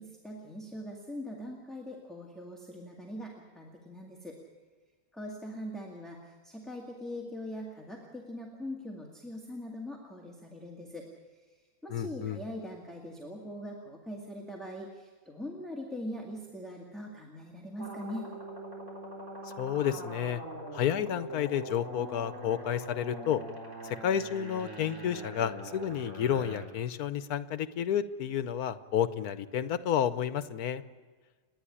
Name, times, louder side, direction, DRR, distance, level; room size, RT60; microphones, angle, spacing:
voice 1, 0.0-4.4 5.1-18.3, equal, ahead, -2 dB, 2.1 m, -42 dB
voice 2, 11.9-12.4 19.6-20.4 20.7-23.4 23.8-30.8, left 9 dB, 80° left, 13 dB, 1.3 m, -31 dB
sound 1, 17.8-26.6, right 1 dB, 50° right, 4.6 m, -43 dB
30.0 x 10.5 x 9.9 m, 1.4 s
omnidirectional pair, 1.6 m